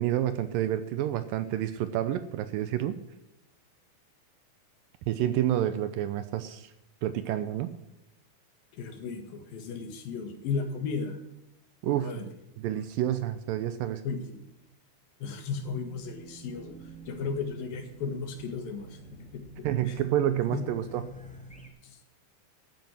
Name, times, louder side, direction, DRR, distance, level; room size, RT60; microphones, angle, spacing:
voice 1, 0.0-3.0 5.1-6.7 7.0-7.7 11.8-12.1 12.6-14.0 19.6-21.0, right 12 dB, 80° right, 11 dB, 2.3 m, -29 dB
voice 2, 8.7-11.2 11.9-12.3 14.0-14.4 15.2-20.0 20.5-20.6 21.8-22.0, left 5 dB, 70° left, 6 dB, 3.5 m, -35 dB
Race car auto racing / Alarm, 15.5-21.7, equal, 10° left, 0.5 m, -48 dB
13.5 x 9.2 x 6.1 m, 0.88 s
omnidirectional pair, 4.3 m